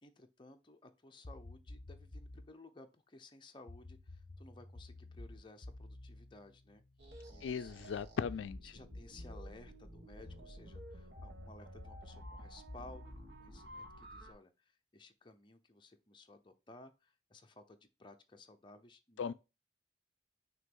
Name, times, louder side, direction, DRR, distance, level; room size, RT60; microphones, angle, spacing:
voice 1, 0.0-6.8 7.3-8.0 8.6-19.3, left 2 dB, 25° left, 0.7 m, -57 dB
sound 1, 1.2-2.5 3.7-7.4 8.3-9.5 10.3-14.2, left 1 dB, 45° left, 0.9 m, -52 dB
sound 2, 7.0-14.3, right 1 dB, 60° right, 1.4 m, -53 dB
voice 2, 7.4-8.7 19.2-19.3, left 6 dB, 90° left, 0.3 m, -38 dB
6.3 x 2.9 x 5.4 m
head